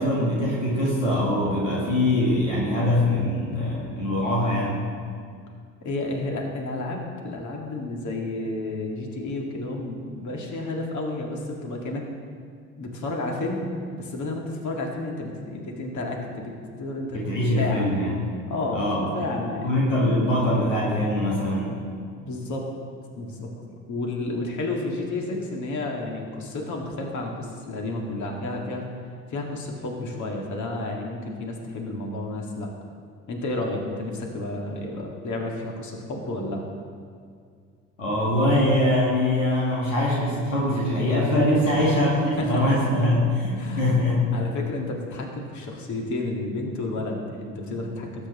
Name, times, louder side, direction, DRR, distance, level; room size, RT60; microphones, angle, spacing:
voice 1, 0.0-4.9 17.1-18.2 18.7-19.1 19.6-21.8 38.0-44.3, left 1 dB, 90° left, -5 dB, 1.9 m, -23 dB
voice 2, 5.8-12.1 12.8-13.7 14.0-17.9 18.5-19.7 22.2-22.7 23.2-28.9 29.3-32.7 33.3-36.6 41.8-42.0 42.4-42.8 43.6-44.0 44.3-48.3, left 2 dB, 50° left, 0 dB, 2.3 m, -31 dB
19.0 x 8.9 x 3.1 m, 2.1 s
figure-of-eight pair, 50°, 37 cm